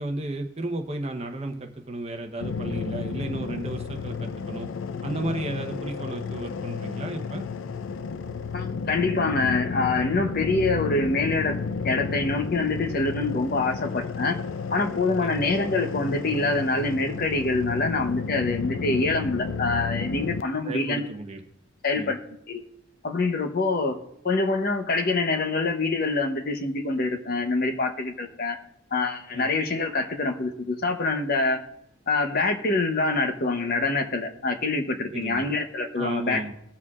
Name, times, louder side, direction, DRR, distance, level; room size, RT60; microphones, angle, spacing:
voice 1, 0.0-4.7 5.0-7.4 15.2-15.4 20.6-21.4 21.9-22.1 29.3-29.5 35.1-35.5 36.0-36.5, right 2 dB, 30° right, 4 dB, 0.9 m, -33 dB
sound 1, 2.4-20.4, left 5 dB, 65° left, 0.4 m, -32 dB
voice 2, 8.5-11.6 11.8-14.4 14.7-21.1 21.8-22.2 22.5-22.6 23.0-28.6 28.9-31.6 32.1-36.4, left 3 dB, 45° left, 6 dB, 0.8 m, -25 dB
21.0 x 7.1 x 2.4 m, 0.78 s
head